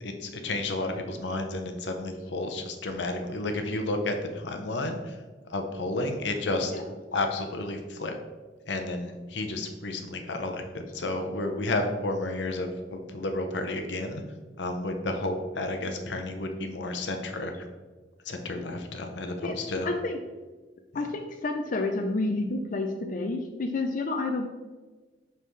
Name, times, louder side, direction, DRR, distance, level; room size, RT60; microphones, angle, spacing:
voice 1, 0.0-5.2 5.5-6.7 7.1-8.1 8.7-14.2 14.6-17.5 18.2-19.9 20.9-21.0, left 2 dB, 85° left, 5 dB, 0.8 m, -31 dB
voice 2, 19.8-20.2 20.9-24.5, left 2 dB, 50° left, 4 dB, 0.5 m, -29 dB
5.7 x 5.5 x 3.2 m, 1.3 s
head